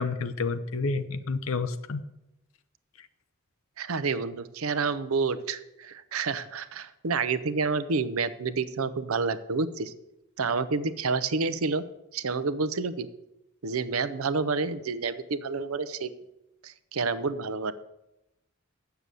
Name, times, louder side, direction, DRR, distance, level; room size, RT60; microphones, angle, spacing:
voice 1, 0.0-2.0, left 4 dB, 75° left, 10 dB, 0.6 m, -29 dB
voice 2, 3.8-9.9 10.4-11.8 12.1-13.1 13.6-16.1 16.6-17.7, right 4 dB, 85° right, 13 dB, 0.7 m, -29 dB
7.6 x 6.9 x 8.3 m, 0.90 s
head